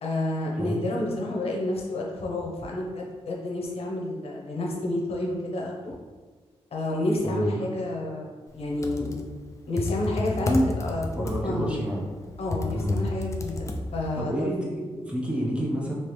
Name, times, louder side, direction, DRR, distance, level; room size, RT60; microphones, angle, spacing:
voice 1, 0.0-5.9 6.7-9.1 9.7-11.8 12.4-14.5, left 1 dB, 65° left, -2 dB, 0.7 m, -29 dB
voice 2, 7.2-7.7 11.1-12.1 12.7-13.0 14.1-15.9, right 1 dB, 10° right, -4 dB, 0.7 m, -29 dB
Computer keyboard, 8.6-14.2, left 2 dB, 30° left, 0.4 m, -31 dB
3.3 x 2.9 x 3.1 m, 1.4 s
wide cardioid pair, 115°, 11 cm